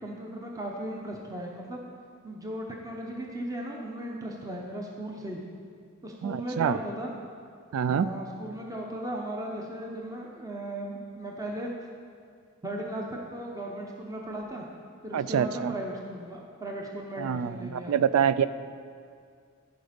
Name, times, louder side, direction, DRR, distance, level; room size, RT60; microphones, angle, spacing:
voice 1, 0.0-1.8 2.2-5.4 6.0-7.1 7.8-11.7 12.6-14.7 15.0-17.9, right 1 dB, 15° right, -1 dB, 0.8 m, -37 dB
voice 2, 6.2-6.8 7.7-8.1 15.1-15.7 17.2-18.5, right 8 dB, 75° right, 15 dB, 0.3 m, -26 dB
14.5 x 5.1 x 5.1 m, 2.2 s
head